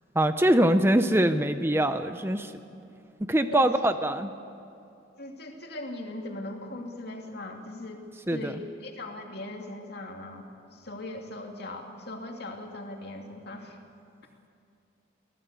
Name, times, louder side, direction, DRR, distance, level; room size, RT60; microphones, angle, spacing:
voice 1, 0.2-2.5 3.2-4.3 8.3-8.5, right 1 dB, 10° right, 9 dB, 0.6 m, -23 dB
voice 2, 5.2-8.0 8.3-13.8, left 1 dB, 55° left, 2 dB, 2.6 m, -39 dB
24.0 x 17.0 x 8.2 m, 2.6 s
head